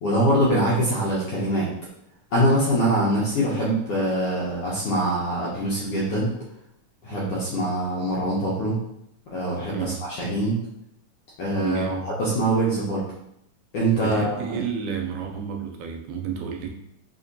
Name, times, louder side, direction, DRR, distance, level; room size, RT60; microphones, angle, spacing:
voice 1, 0.0-1.7 2.3-6.3 7.0-8.8 9.3-10.6 11.4-13.0 13.7-14.6, right 1 dB, 75° left, -7 dB, 1.4 m, -23 dB
voice 2, 11.6-12.1 13.9-16.7, right 7 dB, 85° right, 3 dB, 2.0 m, -31 dB
4.6 x 2.9 x 2.6 m, 0.77 s
omnidirectional pair, 3.6 m